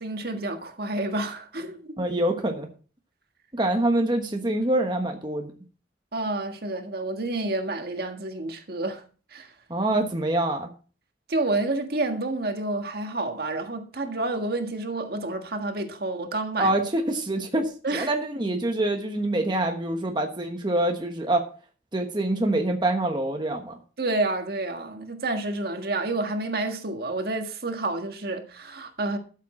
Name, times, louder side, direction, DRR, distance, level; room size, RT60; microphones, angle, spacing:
voice 1, 0.0-2.1 6.1-9.0 9.3-9.5 11.3-16.7 17.8-18.1 24.0-29.2, right 2 dB, 60° right, 1.6 m, -29 dB
voice 2, 2.0-2.7 3.5-5.5 9.7-10.7 16.6-21.4 21.9-23.7, right 1 dB, 25° right, 1.2 m, -25 dB
12.5 x 7.3 x 4.3 m
head